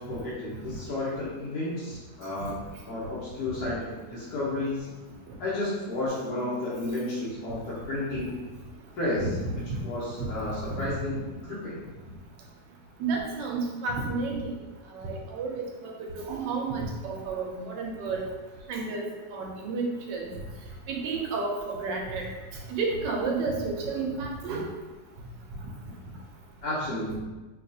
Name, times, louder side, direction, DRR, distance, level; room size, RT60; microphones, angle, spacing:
voice 1, 0.0-2.5 2.9-3.8 4.1-4.9 5.4-8.3 8.9-9.3 9.8-11.8 26.6-27.2, left 2 dB, 65° left, -9 dB, 1.3 m, -32 dB
voice 2, 9.2-9.5 10.2-10.3 13.0-14.4 15.0-15.9 16.3-18.2 18.7-19.1 19.3-20.3 20.9-22.2 22.7-24.6, right 4 dB, 90° right, 0 dB, 1.3 m, -31 dB
4.5 x 2.4 x 2.6 m, 1.2 s
omnidirectional pair, 1.9 m